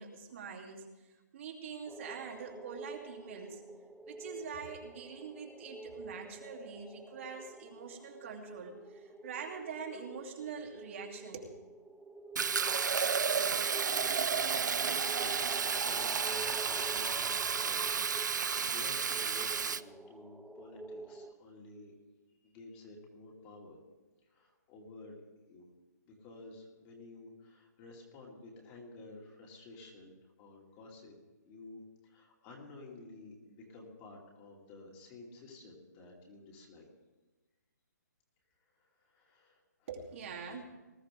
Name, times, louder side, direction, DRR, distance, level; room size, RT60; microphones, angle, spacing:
voice 1, 0.0-3.6 4.1-11.5 39.9-40.6, right 6 dB, 45° right, -1 dB, 2.7 m, -44 dB
sound 1, 1.9-21.3, right 2 dB, ahead, 0.3 m, -49 dB
Fill (with liquid), 12.4-19.8, right 6 dB, 80° right, 0.6 m, -32 dB
voice 2, 13.9-21.9 22.4-23.8 24.2-25.2 25.5-25.7 26.1-31.1 31.4-36.9 39.0-39.9, left 3 dB, 25° left, -1 dB, 2.5 m, -52 dB
20.0 x 13.0 x 3.8 m, 1.2 s
hypercardioid pair, 160°, 10 cm